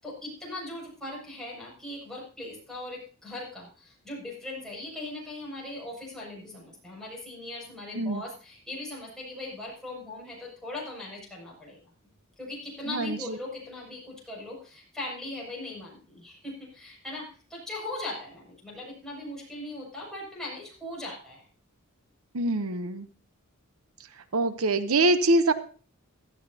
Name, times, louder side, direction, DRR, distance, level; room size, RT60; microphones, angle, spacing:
voice 1, 0.0-11.9 12.4-21.4, left 2 dB, 5° left, -5 dB, 6.5 m, -39 dB
voice 2, 12.8-13.4 22.3-23.1 24.2-25.5, right 2 dB, 80° right, 11 dB, 0.8 m, -25 dB
16.5 x 13.0 x 2.8 m, 0.39 s
head